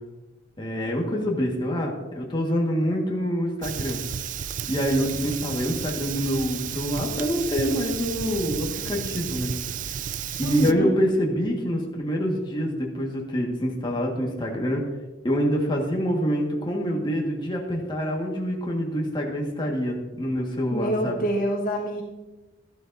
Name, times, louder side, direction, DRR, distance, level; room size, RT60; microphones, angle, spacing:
voice 1, 0.6-4.0 4.7-9.5 10.4-14.8 15.2-21.2, equal, 25° left, -1 dB, 1.6 m, -26 dB
Fire, 3.6-10.7, right 8 dB, 45° right, 0.4 m, -32 dB
voice 2, 10.4-10.9 20.7-22.0, right 1 dB, 50° left, 0 dB, 1.4 m, -26 dB
13.0 x 11.5 x 2.6 m, 1.1 s
head